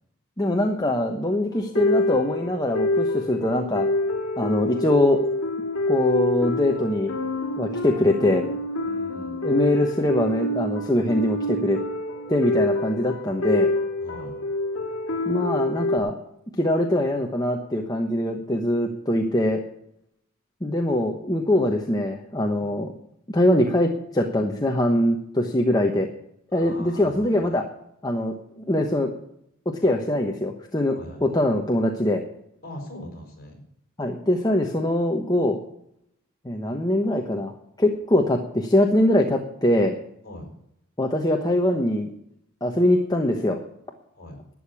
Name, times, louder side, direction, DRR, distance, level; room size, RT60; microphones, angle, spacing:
voice 1, 0.4-3.9 4.4-5.2 5.9-7.1 7.6-8.5 9.4-11.8 12.3-13.7 15.3-16.2 16.6-19.6 20.6-22.9 23.3-26.1 26.5-27.6 28.0-28.3 28.7-29.1 29.8-32.2 34.0-35.6 36.4-37.5 37.8-39.9 41.0-42.1 42.6-43.6, left 1 dB, 15° left, 2 dB, 1.1 m, -22 dB
sound 1, 1.5-16.0, left 2 dB, 60° left, 2.2 m, -26 dB
voice 2, 8.8-9.5 14.0-14.4 22.5-22.7 26.5-27.4 30.9-31.2 32.6-33.6 40.2-40.5 44.1-44.4, left 1 dB, 40° left, 2 dB, 5.5 m, -41 dB
12.5 x 8.9 x 8.4 m, 0.75 s
head